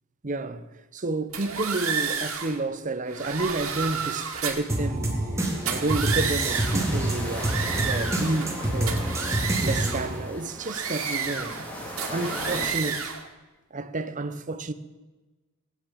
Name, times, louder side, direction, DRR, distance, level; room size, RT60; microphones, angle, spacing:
voice 1, 0.2-0.7 0.9-5.2 5.6-11.7 12.1-13.1 13.7-14.7, right 2 dB, 35° right, 0.8 m, -31 dB
sound 1, 1.3-2.6 3.1-4.7 5.5-6.9 7.3-8.6 8.9-10.1 10.6-11.7 12.0-13.2, right 6 dB, 85° right, 2.0 m, -31 dB
sound 2, 4.7-10.2, right 1 dB, 15° right, 2.4 m, -27 dB
sound 3, 6.5-12.7, equal, 5° left, 3.3 m, -38 dB
17.0 x 9.4 x 7.4 m
head